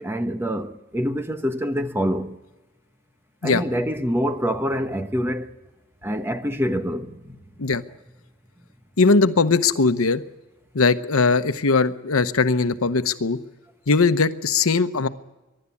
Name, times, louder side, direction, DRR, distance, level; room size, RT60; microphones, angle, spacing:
voice 1, 0.0-2.4 3.4-5.5 6.0-7.4, equal, 10° right, 1.0 m, -26 dB
voice 2, 9.0-10.2 10.7-13.4 13.9-15.1, left 4 dB, 90° left, 0.9 m, -19 dB
22.5 x 12.0 x 9.7 m
head